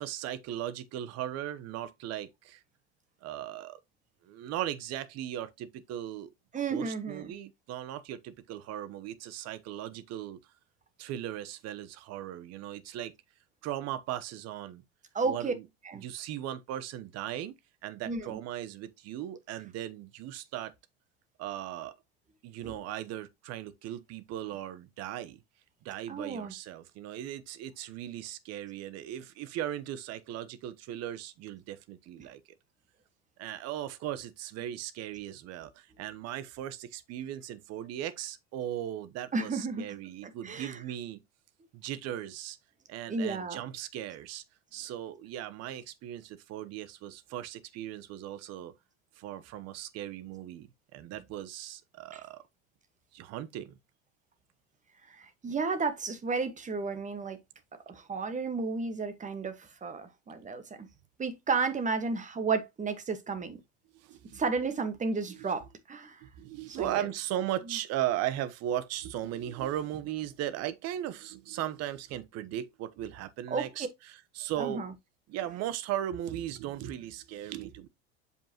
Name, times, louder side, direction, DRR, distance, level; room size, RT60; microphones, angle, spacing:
voice 1, 0.0-2.6 3.2-3.8 4.2-6.3 6.7-10.4 11.0-13.1 13.6-14.8 15.2-15.6 16.0-17.5 17.8-20.7 21.4-21.9 22.4-25.4 25.8-32.4 33.4-41.2 41.7-42.6 42.9-44.4 44.7-48.7 49.2-52.4 53.1-53.7 63.9-64.4 65.3-65.5 66.2-74.8 75.3-77.9, right 12 dB, 50° right, 1.0 m, -37 dB
voice 2, 6.5-7.3 15.1-15.5 15.8-16.0 18.1-18.4 22.6-22.8 26.1-26.5 39.3-39.9 40.4-40.8 43.1-43.6 52.1-52.2 55.1-57.4 57.9-60.9 61.2-63.6 64.3-66.2 66.7-67.0 73.5-73.9 74.6-74.9, right 4 dB, 25° right, 1.5 m, -32 dB
7.1 x 5.5 x 2.9 m
hypercardioid pair, 90°, 32 cm